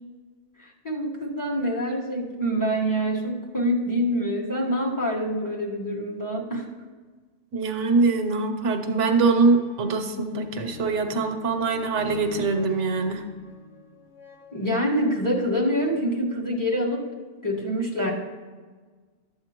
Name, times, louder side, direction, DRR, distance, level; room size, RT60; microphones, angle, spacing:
voice 1, 0.6-6.7 14.5-17.1 17.4-18.1, equal, 15° left, -3 dB, 1.3 m, -26 dB
voice 2, 7.5-13.2, right 4 dB, 85° right, 6 dB, 1.1 m, -23 dB
sound 1, 9.3-15.2 15.9-16.0, left 4 dB, 80° left, 1.2 m, -44 dB
12.0 x 7.9 x 2.9 m, 1.4 s
omnidirectional pair, 1.2 m